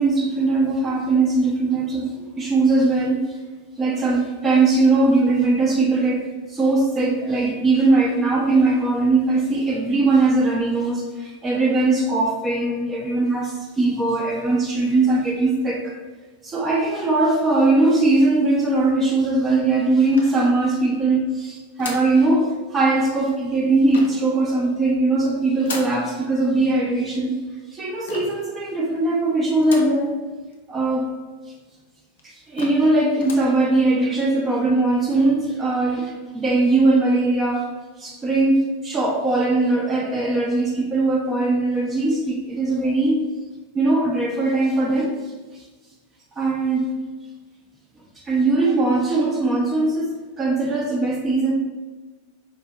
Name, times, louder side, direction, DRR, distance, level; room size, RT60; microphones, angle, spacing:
voice 1, 0.0-3.4 3.8-6.2 6.5-16.0 16.4-27.4 27.7-30.2 30.7-31.1 32.2-37.7 38.0-43.2 43.7-45.1 45.5-45.6 46.4-46.9 48.2-50.1 50.4-51.5, right 2 dB, 20° right, -1 dB, 0.4 m, -20 dB
sound 1, 20.1-20.9 21.8-22.2 23.9-24.3 25.6-26.0 28.1-28.5 29.6-30.0 30.5-30.6 30.8-30.9 31.7-31.8 32.2-32.3 32.6-32.9 33.2-33.5, left 3 dB, 60° left, 0.5 m, -35 dB
4.2 x 2.5 x 2.4 m, 1.3 s
figure-of-eight pair, 90°, 0 cm